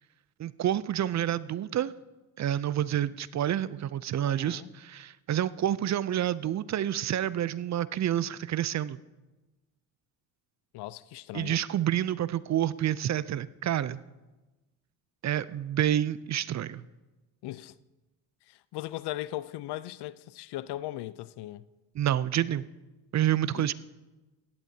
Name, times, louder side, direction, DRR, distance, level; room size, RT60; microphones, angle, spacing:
voice 1, 0.4-1.9 2.4-9.0 11.3-14.0 15.2-16.8 22.0-22.6 23.1-23.7, right 11 dB, 40° right, 0.5 m, -28 dB
voice 2, 4.2-4.7 10.7-11.6 17.4-17.7 18.5-21.6 23.6-23.7, left 15 dB, 65° left, 0.6 m, -38 dB
17.0 x 12.0 x 2.8 m
supercardioid pair, 70°, 42 cm